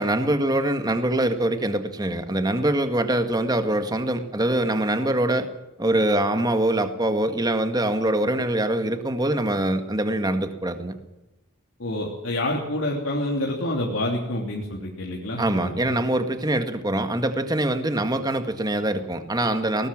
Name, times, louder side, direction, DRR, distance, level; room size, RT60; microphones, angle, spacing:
voice 1, 0.0-5.5 5.8-10.9 15.4-19.9, right 1 dB, 20° right, 8 dB, 1.7 m, -24 dB
voice 2, 11.8-16.0, left 1 dB, 65° left, -2 dB, 3.1 m, -28 dB
19.5 x 18.5 x 7.5 m, 0.99 s
head